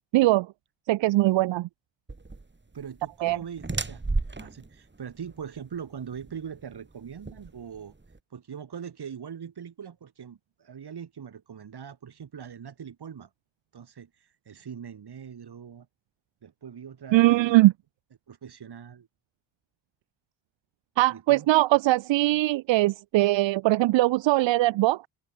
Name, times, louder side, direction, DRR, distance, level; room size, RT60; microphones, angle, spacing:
voice 1, 0.1-0.5 0.9-1.7 3.2-3.4 17.1-17.7 21.0-25.1, right 17 dB, 80° right, 0.8 m, -21 dB
sound 1, 2.1-8.2, right 3 dB, 25° right, 4.3 m, -35 dB
voice 2, 2.7-4.0 4.4-7.9 8.3-13.3 13.7-15.9 16.4-17.6 18.3-19.1 21.1-21.5, right 7 dB, 60° right, 5.0 m, -41 dB
open air
supercardioid pair, 50°, 44 cm